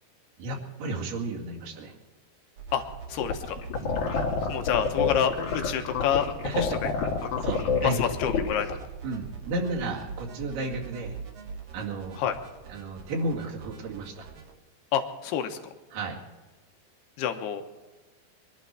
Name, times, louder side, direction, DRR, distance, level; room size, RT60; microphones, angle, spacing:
voice 1, 0.4-1.9 3.8-4.0 4.4-4.6 6.4-6.8 7.4-8.0 9.0-11.2 11.7-12.3 12.7-14.3 15.9-16.2, right 2 dB, 75° right, -1 dB, 4.2 m, -33 dB
sound 1, 2.6-14.5, right 5 dB, 50° right, 2.1 m, -44 dB
voice 2, 3.1-3.6 4.5-6.3 7.2-7.3 7.8-8.7 12.2-12.4 14.9-15.6 17.2-17.6, left 9 dB, 80° left, 6 dB, 3.0 m, -27 dB
sound 2, 3.2-8.7, left 5 dB, 55° left, 3.0 m, -28 dB
22.0 x 12.0 x 4.7 m, 1.2 s
omnidirectional pair, 4.7 m